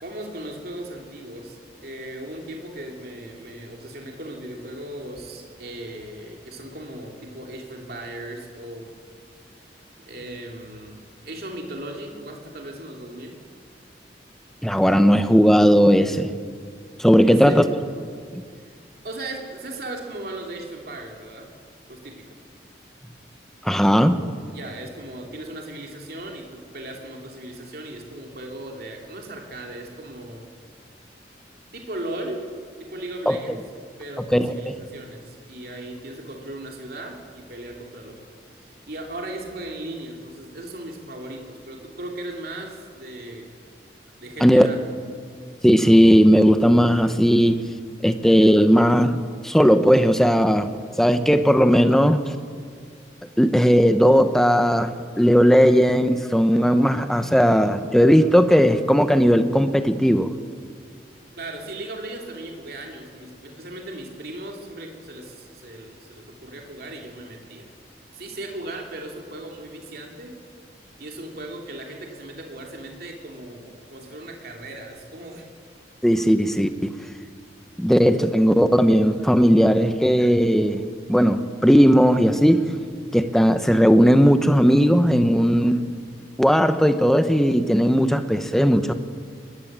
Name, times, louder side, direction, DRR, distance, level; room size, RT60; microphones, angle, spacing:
voice 1, 0.0-1.6 1.8-8.9 10.0-13.3 17.2-17.7 18.5-18.7 19.0-21.5 21.9-22.4 24.5-30.4 31.7-32.5 32.8-33.6 34.0-38.3 38.6-43.5 44.2-44.8 61.3-67.7 68.1-70.3 71.0-75.5, right 1 dB, 55° right, 1 dB, 3.0 m, -37 dB
voice 2, 14.6-16.3 17.0-17.6 18.3-18.4 23.6-24.2 33.3-33.4 34.3-34.7 44.4-44.7 45.6-47.6 48.0-50.7 51.0-52.2 53.4-60.3 76.0-76.7 77.8-82.6 83.1-85.8 86.4-88.9, equal, ahead, 9 dB, 0.9 m, -17 dB
21.0 x 20.5 x 7.5 m, 2.1 s
head